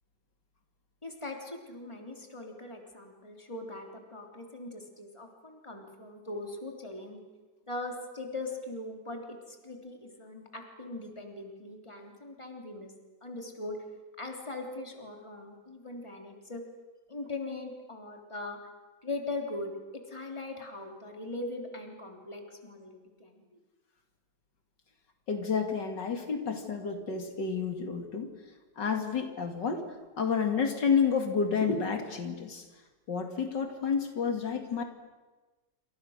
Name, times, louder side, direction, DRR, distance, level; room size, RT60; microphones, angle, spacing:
voice 1, 1.0-7.2 7.7-12.9 13.2-13.8 14.2-16.6 17.1-18.6 19.0-23.5, left 2 dB, 15° left, 2 dB, 3.3 m, -40 dB
voice 2, 25.3-28.3 28.8-29.8 30.2-32.7 33.1-34.8, left 6 dB, 75° left, 5 dB, 2.8 m, -30 dB
28.0 x 25.5 x 6.5 m, 1.2 s
omnidirectional pair, 1.9 m